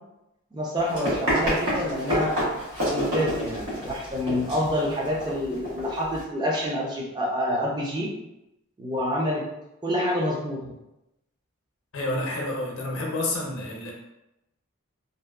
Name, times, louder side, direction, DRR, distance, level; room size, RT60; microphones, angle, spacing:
voice 1, 0.5-2.3 2.8-8.1 8.8-9.5 9.8-10.7, left 1 dB, 20° right, -3 dB, 0.4 m, -27 dB
Run, 0.8-6.2, equal, 70° right, 1.2 m, -29 dB
voice 2, 11.9-13.9, left 2 dB, 75° left, -1 dB, 0.6 m, -29 dB
2.6 x 2.1 x 2.2 m, 0.92 s
head